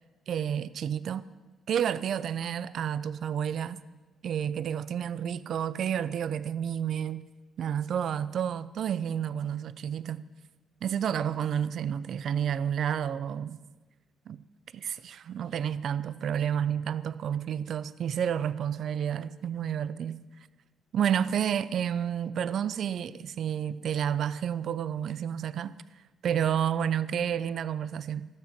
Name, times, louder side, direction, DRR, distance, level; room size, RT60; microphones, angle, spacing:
voice 1, 0.3-1.2 1.7-3.8 4.2-7.3 7.6-10.2 10.8-13.6 14.3-14.4 14.7-20.2 20.9-25.7 26.2-28.3, right 9 dB, 65° right, 0.5 m, -30 dB
15.0 x 13.5 x 5.9 m
cardioid pair, 105°, 0 cm